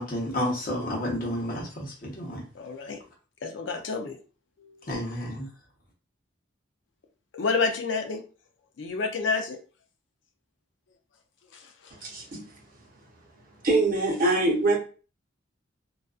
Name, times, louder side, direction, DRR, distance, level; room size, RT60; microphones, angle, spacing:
voice 1, 0.0-2.4 4.9-5.5, left 1 dB, 50° left, 0.9 m, -31 dB
voice 2, 2.5-3.0 3.4-4.2 4.6-4.8 7.3-8.2 8.8-9.6 11.5-11.9, left 4 dB, 70° left, 0.4 m, -29 dB
voice 3, 12.0-12.4 13.6-14.8, right 2 dB, 50° right, 0.9 m, -23 dB
2.4 x 2.4 x 2.3 m
head